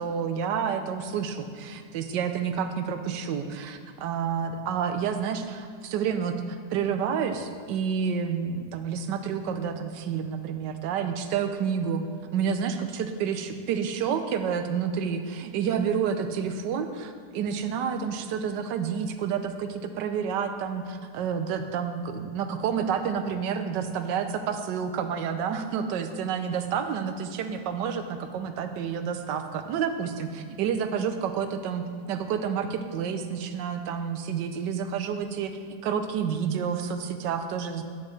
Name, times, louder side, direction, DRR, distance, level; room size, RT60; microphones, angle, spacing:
voice 1, 0.0-12.0 12.3-37.8, right 7 dB, 85° right, 8 dB, 1.3 m, -29 dB
10.5 x 8.7 x 3.2 m, 2.2 s
omnidirectional pair, 1.9 m